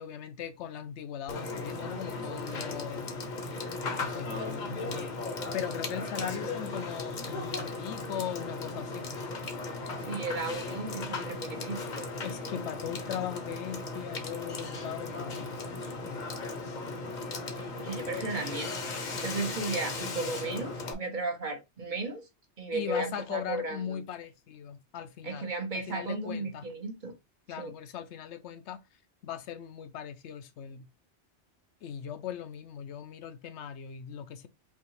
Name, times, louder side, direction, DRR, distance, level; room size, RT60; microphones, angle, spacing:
voice 1, 0.0-3.2 4.0-5.2 5.5-9.0 12.2-15.6 16.0-16.3 22.7-25.5 25.9-26.7 27.5-28.8 29.2-30.9 31.8-34.5, left 9 dB, 80° left, 0.9 m, -39 dB
Water / Water tap faucet / Sink (filling or washing), 1.3-20.9, left 3 dB, 45° left, 0.8 m, -36 dB
voice 2, 10.0-11.8 17.6-18.7 19.2-22.3 22.6-24.0 25.2-27.1 27.6-27.7, right 3 dB, 45° right, 1.0 m, -35 dB
5.5 x 2.4 x 3.1 m
omnidirectional pair, 1.2 m